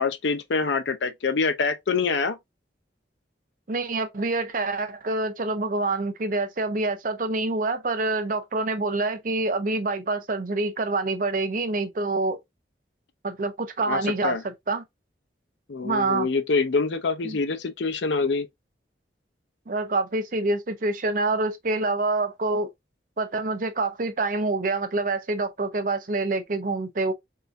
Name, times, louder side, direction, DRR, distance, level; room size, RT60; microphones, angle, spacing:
voice 1, 0.0-2.4 13.9-14.4 15.7-18.5, left 4 dB, 85° left, 0.6 m, -25 dB
voice 2, 3.7-12.4 13.2-14.8 15.8-16.3 17.2-17.4 19.7-22.7 23.2-27.1, right 3 dB, 50° right, 0.6 m, -26 dB
3.7 x 2.6 x 2.5 m
head